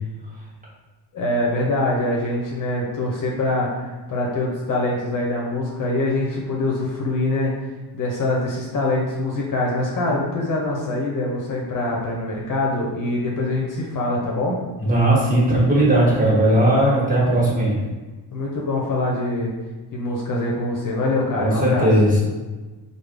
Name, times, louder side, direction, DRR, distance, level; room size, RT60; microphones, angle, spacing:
voice 1, 1.1-7.5 7.9-14.6 18.3-19.5 19.9-21.9, left 2 dB, 50° left, -2 dB, 0.7 m, -24 dB
voice 2, 14.8-17.8 21.4-22.2, right 1 dB, 20° right, -7 dB, 1.4 m, -17 dB
3.6 x 2.0 x 3.3 m, 1.2 s
cardioid pair, 110°, 42 cm